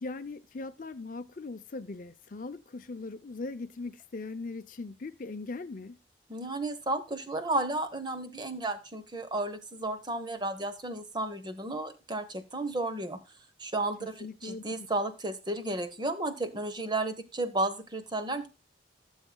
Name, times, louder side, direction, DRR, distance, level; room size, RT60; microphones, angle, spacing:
voice 1, 0.0-6.0 14.0-14.6, left 3 dB, 45° left, 0.6 m, -40 dB
voice 2, 6.3-13.2 13.6-18.5, right 2 dB, 25° right, 1.0 m, -33 dB
15.5 x 7.3 x 2.3 m
head